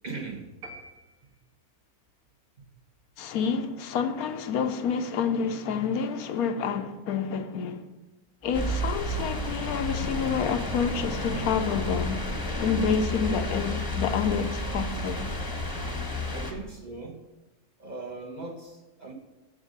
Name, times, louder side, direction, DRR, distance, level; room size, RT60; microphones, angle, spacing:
voice 1, 0.0-0.5 16.3-17.2 17.8-19.1, right 3 dB, 35° right, 1.1 m, -39 dB
sound 1, 0.6-1.9, right 2 dB, 65° right, 1.8 m, -47 dB
voice 2, 3.2-7.9 8.4-12.2 12.6-15.3, left 6 dB, 80° left, 1.2 m, -28 dB
sound 2, 8.5-16.5, left 1 dB, 15° left, 1.0 m, -31 dB
7.8 x 7.4 x 6.5 m
omnidirectional pair, 1.6 m